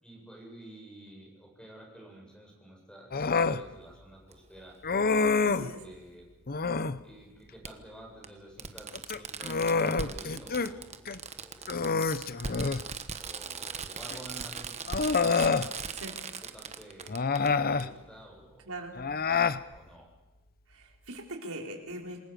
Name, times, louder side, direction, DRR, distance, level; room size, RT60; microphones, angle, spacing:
voice 1, 0.0-4.8 5.4-6.3 7.0-12.0 13.2-15.9 16.4-18.8 19.7-20.1, right 1 dB, 5° left, 0 dB, 7.8 m, -51 dB
Human voice, 3.1-3.6 4.8-5.7 6.5-7.0 8.9-10.7 11.1-11.2 11.7-12.9 14.1-14.2 14.9-15.7 17.1-17.9 19.0-19.6, left 4 dB, 45° left, 0.9 m, -27 dB
Fireworks, 4.3-4.4 5.9-6.0 7.6-7.7 8.2-8.3 8.6-17.5 17.8-17.9, right 5 dB, 30° right, 1.3 m, -39 dB
voice 2, 5.4-5.8 15.9-16.2 18.7-18.9 20.7-22.2, right 1 dB, 70° right, 1 dB, 4.9 m, -41 dB
28.0 x 20.5 x 6.9 m, 1.1 s
head